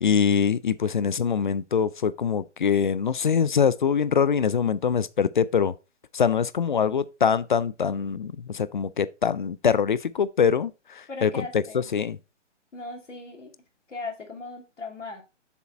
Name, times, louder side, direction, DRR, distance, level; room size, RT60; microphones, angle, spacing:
voice 1, 0.0-5.7 6.1-11.6 11.9-12.2, left 7 dB, 45° left, 0.4 m, -24 dB
voice 2, 11.1-11.9 12.7-13.6 13.9-15.2, left 3 dB, 80° left, 2.7 m, -38 dB
7.0 x 4.7 x 4.2 m
figure-of-eight pair, 145°, 36 cm